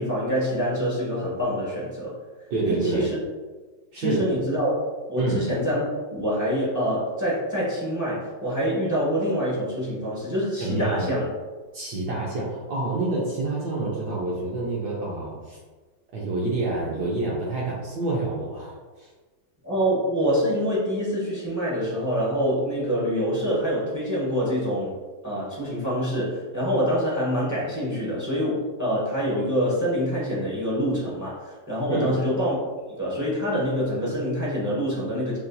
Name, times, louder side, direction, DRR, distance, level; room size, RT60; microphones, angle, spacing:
voice 1, 0.0-2.1 2.7-3.2 3.9-4.7 5.1-5.8 6.1-11.3 19.6-25.0 25.2-32.6 33.0-35.4, equal, 20° right, -7 dB, 0.5 m, -26 dB
voice 2, 2.5-3.0 3.9-4.2 5.2-5.4 10.6-11.1 11.7-15.6 16.1-19.1 31.9-32.2, right 2 dB, 70° right, -4 dB, 1.1 m, -27 dB
5.7 x 2.6 x 2.2 m, 1.3 s
omnidirectional pair, 2.1 m